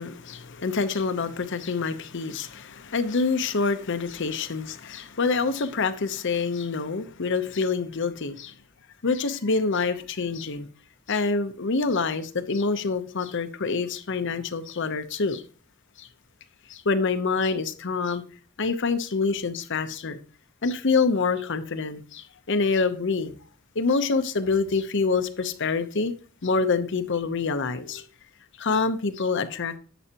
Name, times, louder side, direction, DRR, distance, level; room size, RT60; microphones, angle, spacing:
voice 1, 0.0-8.5 9.0-10.7 11.1-15.4 16.0-16.1 16.7-18.2 18.6-20.2 20.6-23.3 23.7-26.1 26.4-28.1 28.6-29.8, left 4 dB, 60° left, 0.8 m, -26 dB
11.0 x 8.0 x 2.9 m
head